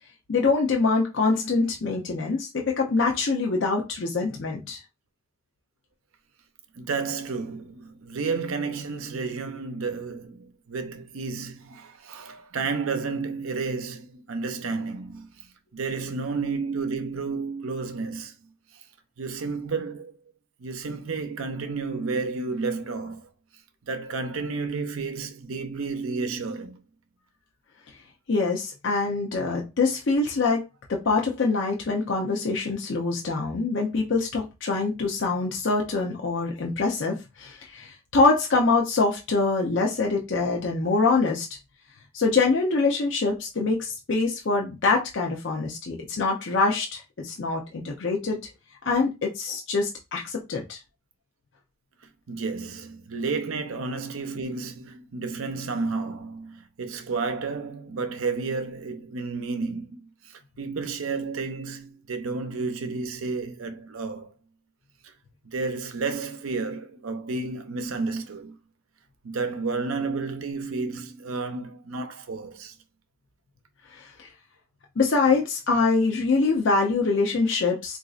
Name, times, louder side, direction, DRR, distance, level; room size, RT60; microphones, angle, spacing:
voice 1, 0.3-4.8 28.3-41.5 42.1-48.4 48.9-50.8 73.9-74.3 75.0-78.0, left 3 dB, 65° left, 0.6 m, -24 dB
voice 2, 6.7-18.3 19.2-20.2 20.6-23.3 23.9-26.8 52.3-64.3 65.0-65.1 65.4-68.6 69.2-72.7, right 4 dB, 90° right, 0.6 m, -31 dB
3.9 x 2.5 x 2.4 m
head